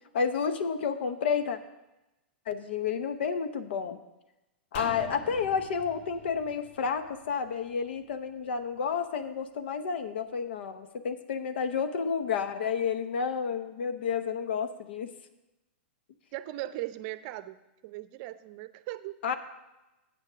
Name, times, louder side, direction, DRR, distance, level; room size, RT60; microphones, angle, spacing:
voice 1, 0.1-1.6 2.5-4.0 4.7-15.1 19.2-19.4, left 6 dB, 75° left, 9 dB, 0.8 m, -30 dB
sound 1, 4.7-8.1 8.4-8.5, left 4 dB, 50° left, 1.4 m, -45 dB
voice 2, 16.3-17.6 17.8-19.2, right 15 dB, 50° right, 13 dB, 0.6 m, -38 dB
9.0 x 6.6 x 6.2 m, 0.98 s
hypercardioid pair, 120°, 6 cm